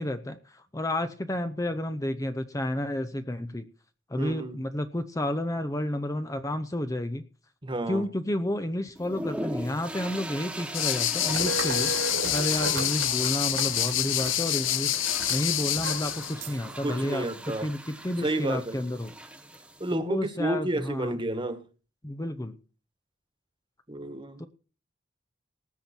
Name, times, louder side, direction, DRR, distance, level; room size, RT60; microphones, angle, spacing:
voice 1, 0.0-3.7 4.1-7.2 7.9-11.9 12.3-15.0 15.3-19.1 19.9-21.1 22.0-22.6 24.4-24.5, left 1 dB, 15° left, 9 dB, 0.8 m, -31 dB
voice 2, 4.2-4.6 7.6-8.0 16.8-17.7 18.2-18.8 19.8-21.6 23.9-24.4, right 1 dB, 25° right, 10 dB, 1.6 m, -31 dB
sound 1, 9.0-19.9, right 1 dB, 5° right, 1.0 m, -41 dB
sound 2, 10.7-16.3, left 13 dB, 85° left, 0.9 m, -27 dB
sound 3, 11.3-16.8, right 3 dB, 80° right, 2.8 m, -36 dB
19.0 x 7.8 x 4.4 m, 0.35 s
head